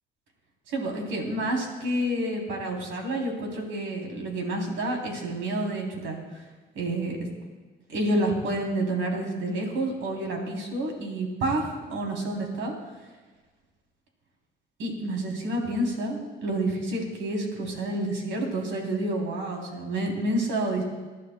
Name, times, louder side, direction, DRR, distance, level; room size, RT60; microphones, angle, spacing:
voice 1, 0.7-6.4 6.7-7.2 7.9-12.7 14.8-20.8, right 1 dB, 85° right, 1 dB, 3.2 m, -29 dB
26.5 x 11.5 x 2.2 m, 1.3 s
cardioid pair, 90°, 20 cm